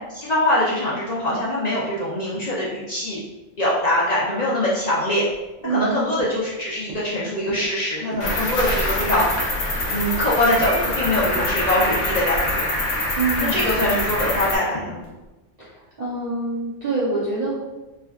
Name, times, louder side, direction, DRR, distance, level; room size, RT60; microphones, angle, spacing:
voice 1, 0.1-3.2 3.6-5.3 5.6-9.3 9.9-12.6 13.5-15.0, left 1 dB, 55° left, -6 dB, 0.4 m, -23 dB
sound 1, 5.3-5.9 6.2-6.5 6.9-7.1 7.5-7.8 8.1-8.4 8.6-9.0 9.4-9.6 10.0-10.8 11.2-11.6 11.8-12.1 12.4-13.3 13.7-13.9 14.3-14.6 15.0-15.3, right 3 dB, 90° right, 1.1 m, -40 dB
voice 2, 5.6-6.1 13.1-13.7 15.6-17.6, right 3 dB, 45° right, -10 dB, 0.7 m, -26 dB
Cricket, 8.2-14.6, left 1 dB, 80° left, 1.0 m, -24 dB
3.4 x 2.2 x 2.2 m, 1.1 s
omnidirectional pair, 1.2 m